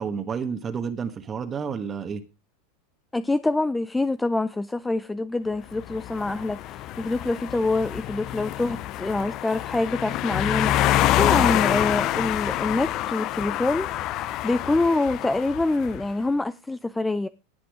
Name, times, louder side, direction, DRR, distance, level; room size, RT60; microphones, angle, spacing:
voice 1, 0.0-2.2, right 6 dB, 30° right, 1.5 m, -30 dB
voice 2, 3.1-17.3, left 2 dB, 10° left, 0.6 m, -26 dB
sound 1, 5.7-16.0, left 14 dB, 50° left, 0.7 m, -26 dB
17.5 x 5.9 x 5.0 m
hypercardioid pair, 100°, 0 cm